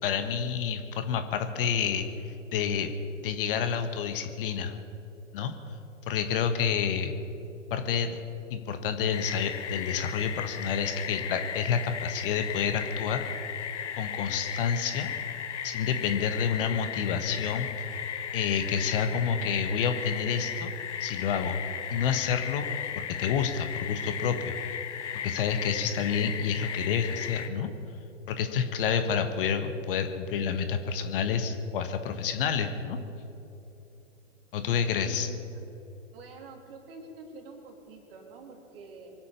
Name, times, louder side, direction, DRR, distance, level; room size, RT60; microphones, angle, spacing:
voice 1, 0.0-2.1 2.5-2.9 3.2-4.8 5.3-5.5 6.1-7.1 7.7-8.2 8.5-13.2 14.0-15.1 15.6-17.7 18.3-20.7 21.0-21.6 21.9-22.7 22.9-24.6 25.2-27.7 28.3-33.0 34.5-35.3, left 7 dB, 45° left, 8 dB, 1.4 m, -29 dB
sound 1, 9.1-27.5, left 8 dB, 60° left, 1.2 m, -36 dB
voice 2, 35.0-35.6 36.1-39.1, right 4 dB, 45° right, 2 dB, 3.2 m, -47 dB
24.0 x 8.5 x 7.0 m, 3.0 s
figure-of-eight pair, 110°, 39 cm